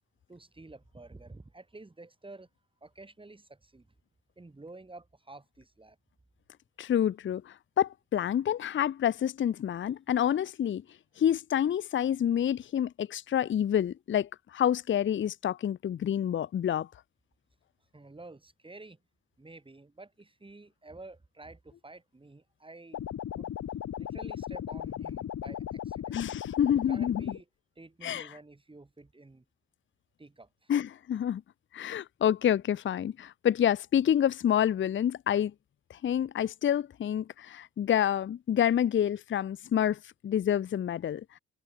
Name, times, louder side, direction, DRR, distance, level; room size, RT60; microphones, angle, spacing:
voice 1, 0.3-2.5 2.8-3.9 4.4-6.0 17.9-19.0 19.4-23.0 23.3-23.5 24.0-26.2 26.9-27.5 27.8-29.5 30.2-30.7, right 2 dB, 15° right, 6.9 m, -50 dB
voice 2, 6.8-10.8 11.2-16.9 26.1-27.3 28.0-28.3 30.7-31.4 31.7-35.5 35.9-41.2, left 10 dB, 40° left, 0.6 m, -28 dB
sound 1, 22.9-27.4, left 10 dB, 60° left, 3.0 m, -37 dB
cardioid pair, 90°, 30 cm